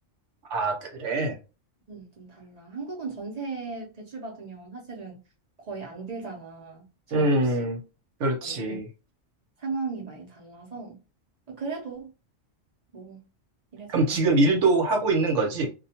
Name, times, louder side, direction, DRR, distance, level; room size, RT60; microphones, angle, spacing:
voice 1, 0.5-1.4 7.1-7.8 8.2-8.9 13.9-15.7, right 2 dB, 75° right, 1.1 m, -23 dB
voice 2, 1.9-5.2 5.6-6.8 7.1-7.5 8.4-8.8 9.6-11.0 11.5-12.1 12.9-13.2 13.7-14.2, right 4 dB, 40° right, 0.7 m, -37 dB
2.4 x 2.3 x 2.8 m
omnidirectional pair, 1.3 m